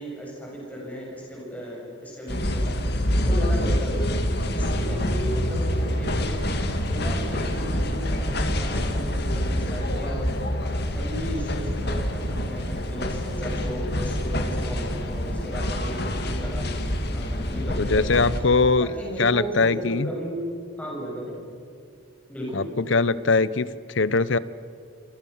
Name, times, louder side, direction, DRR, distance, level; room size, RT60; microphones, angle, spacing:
voice 1, 0.0-2.8 3.2-4.2 4.5-6.5 6.9-10.3 10.9-16.8 17.1-18.2 18.8-20.4 20.8-21.4 22.3-22.7, equal, 5° left, -3 dB, 8.0 m, -35 dB
sound 1, 2.3-18.4, equal, 50° left, 2.3 m, -26 dB
sound 2, 4.5-17.9, left 1 dB, 15° right, 5.4 m, -40 dB
voice 2, 17.8-18.9 19.2-20.1 22.5-24.4, left 3 dB, 65° left, 17 dB, 0.8 m, -21 dB
27.5 x 26.5 x 7.2 m, 2.2 s
head